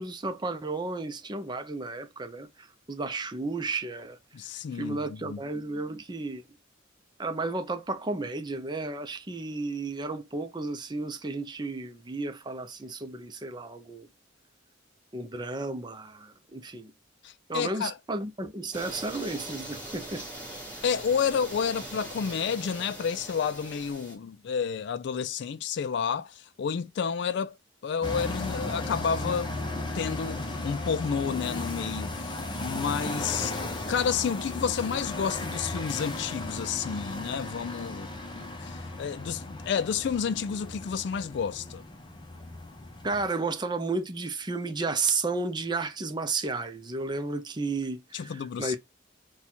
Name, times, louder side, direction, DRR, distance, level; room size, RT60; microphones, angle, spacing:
voice 1, 0.0-4.2 4.8-6.4 7.2-14.1 15.1-16.9 17.5-20.2 43.0-48.8, right 3 dB, 25° right, 0.6 m, -33 dB
voice 2, 4.3-5.4 17.2-18.0 20.8-27.6 27.8-33.6 33.9-41.8 48.1-48.8, left 6 dB, 60° left, 0.3 m, -30 dB
sound 1, 18.7-24.2, right 1 dB, 10° left, 1.8 m, -41 dB
sound 2, 28.0-43.3, left 2 dB, 25° left, 0.7 m, -36 dB
4.1 x 2.3 x 4.3 m
head